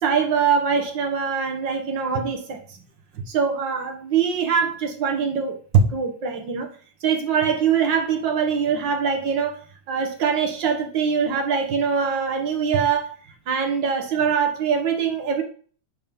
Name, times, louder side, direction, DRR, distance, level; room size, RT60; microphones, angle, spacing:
voice 1, 0.0-2.8 3.1-6.7 7.0-13.2 13.5-15.4, right 6 dB, 65° right, 1.1 m, -23 dB
10.5 x 3.7 x 5.2 m
omnidirectional pair, 3.9 m